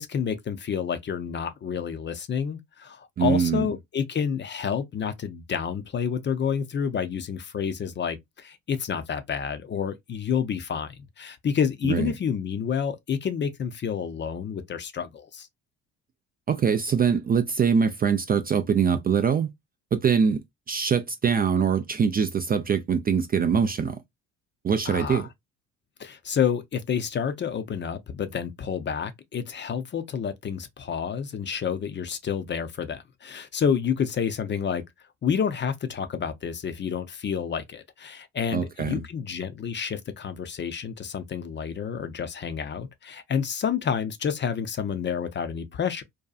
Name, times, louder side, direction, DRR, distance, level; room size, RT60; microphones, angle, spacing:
voice 1, 0.0-15.5 24.9-25.3 26.0-34.8 35.2-46.0, left 7 dB, 35° left, 0.5 m, -29 dB
voice 2, 3.2-3.7 11.8-12.1 16.5-19.5 19.9-20.4 20.7-24.0 24.6-25.3 38.5-39.0, right 6 dB, 30° right, 0.3 m, -23 dB
2.6 x 2.3 x 2.3 m
supercardioid pair, 65°, 34 cm